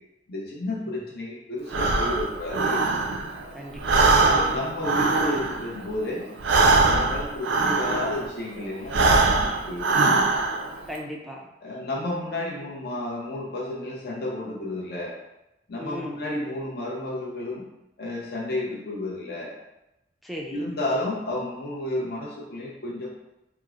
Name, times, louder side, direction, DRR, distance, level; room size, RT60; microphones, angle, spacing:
voice 1, 0.3-2.8 4.2-6.3 6.8-10.2 11.6-15.1 15.7-17.6 18.0-19.5 20.5-23.1, left 1 dB, 60° left, -4 dB, 0.7 m, -31 dB
Breathing, 1.7-3.4 3.7-8.3 8.8-10.7, right 3 dB, 85° right, 0.4 m, -22 dB
voice 2, 3.5-4.5 10.9-11.5 15.8-16.2 20.2-20.6, equal, ahead, -2 dB, 0.3 m, -37 dB
4.5 x 2.0 x 2.4 m, 0.93 s
head